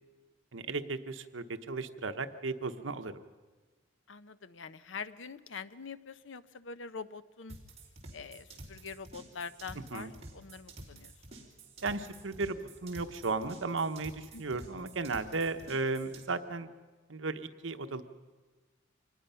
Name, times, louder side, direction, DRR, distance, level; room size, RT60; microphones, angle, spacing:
voice 1, 0.5-3.1 9.9-10.1 11.8-16.7 17.1-18.0, right 3 dB, 80° right, 9 dB, 1.0 m, -35 dB
voice 2, 4.1-7.6 8.1-11.1 14.3-14.7, left 5 dB, 75° left, 14 dB, 0.7 m, -44 dB
sound 1, 7.5-16.2, right 2 dB, 30° right, 3.2 m, -50 dB
25.0 x 19.5 x 5.7 m, 1.3 s
head